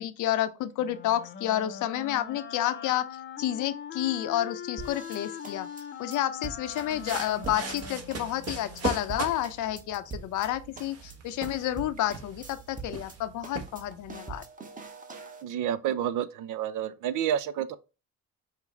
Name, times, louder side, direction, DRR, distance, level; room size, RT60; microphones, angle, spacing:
voice 1, 0.0-3.1 3.4-5.7 6.0-14.4, left 12 dB, 80° left, 0.6 m, -30 dB
Wind instrument woodwind instrument, 0.8-9.0, left 7 dB, 40° left, 0.7 m, -42 dB
sound 1, 4.8-7.8 8.1-8.5 8.8-8.9 9.1-10.5 10.8-11.1 11.4-11.5 11.8-13.2 13.4-15.4, right 4 dB, 25° right, 1.1 m, -43 dB
sound 2, 6.7-14.1, right 4 dB, 55° right, 1.3 m, -39 dB
voice 2, 15.4-17.7, right 10 dB, 80° right, 0.6 m, -29 dB
5.7 x 2.0 x 4.4 m
cardioid pair, 95°, 30 cm